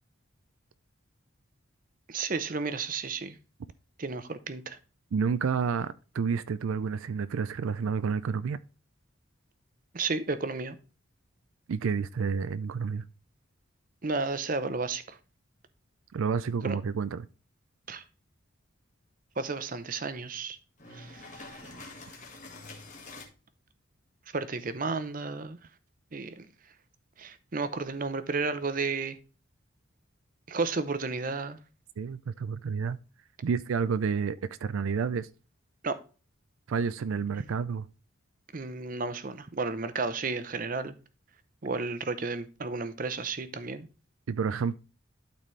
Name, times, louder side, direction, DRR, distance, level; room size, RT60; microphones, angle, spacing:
voice 1, 2.1-3.4 4.0-4.8 9.9-10.8 14.0-15.2 16.6-16.8 17.9-18.0 19.4-20.6 20.9-21.8 24.3-25.6 26.1-26.5 27.2-29.2 30.5-31.6 35.8-36.0 38.5-41.0 41.6-43.9, right 4 dB, 40° right, 0.6 m, -32 dB
voice 2, 5.1-8.6 11.7-13.0 16.1-17.2 32.0-33.0 33.4-35.3 36.7-37.8 44.3-44.8, right 6 dB, 80° right, 0.4 m, -30 dB
sound 1, 20.8-23.3, left 2 dB, 35° left, 1.7 m, -46 dB
12.0 x 4.1 x 3.2 m
head